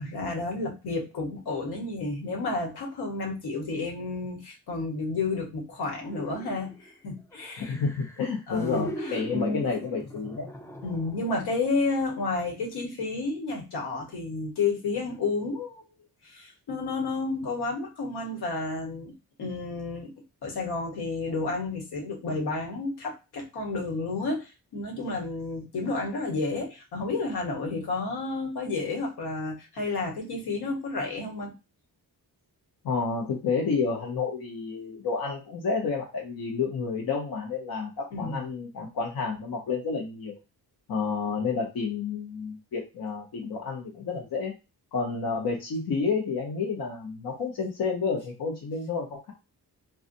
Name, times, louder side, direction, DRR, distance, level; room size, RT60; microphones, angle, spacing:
voice 1, 0.0-7.7 8.5-9.7 10.8-15.8 16.2-19.1 19.4-20.1 20.4-31.5 38.1-38.4, left 3 dB, 85° left, 0 dB, 1.3 m, -31 dB
sound 1, 6.1-6.9 7.3-11.5 11.9-12.0, right 1 dB, 10° left, 0.4 m, -40 dB
voice 2, 7.6-10.5 32.8-40.4 40.9-44.5 44.9-49.3, left 5 dB, 65° left, -1 dB, 0.9 m, -30 dB
3.9 x 2.3 x 2.5 m, 0.27 s
wide cardioid pair, 135°, 38 cm